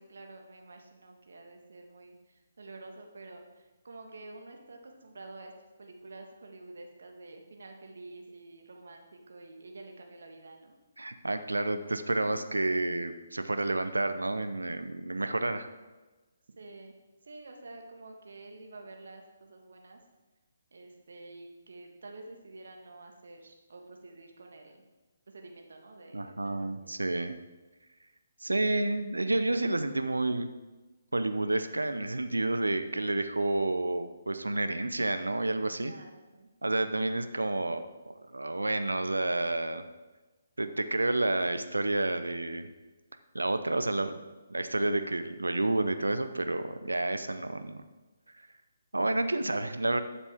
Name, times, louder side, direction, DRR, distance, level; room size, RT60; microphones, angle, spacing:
voice 1, 0.0-5.5 5.8-10.8 12.1-12.8 16.5-16.9 17.2-20.0 20.7-24.8 25.3-26.9 35.8-36.5, right 2 dB, 60° right, 2 dB, 1.6 m, -49 dB
voice 2, 11.0-15.7 26.1-27.3 28.4-30.5 31.1-35.9 36.6-39.8 40.6-42.7 43.3-44.2 44.5-47.8 48.9-50.0, right 2 dB, 80° right, 9 dB, 0.8 m, -30 dB
12.5 x 7.1 x 3.6 m, 1.2 s
figure-of-eight pair, 140°, 0 cm